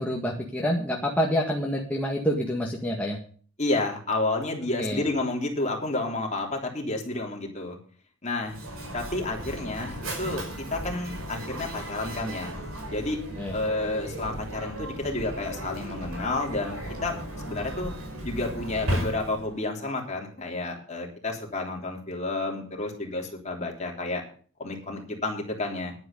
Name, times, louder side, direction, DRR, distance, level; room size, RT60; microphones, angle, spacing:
voice 1, 0.0-3.2 4.8-5.0 13.4-13.5, equal, 5° left, -2 dB, 1.8 m, -27 dB
voice 2, 3.6-7.8 8.2-8.6 8.9-12.5 12.9-13.2 13.5-17.2 17.4-17.9 18.2-24.2 24.6-25.9, left 2 dB, 35° left, 1 dB, 3.4 m, -30 dB
Mechanisms, 8.4-19.6, equal, 85° right, 5.2 m, -36 dB
11.0 x 9.3 x 6.7 m, 0.44 s
head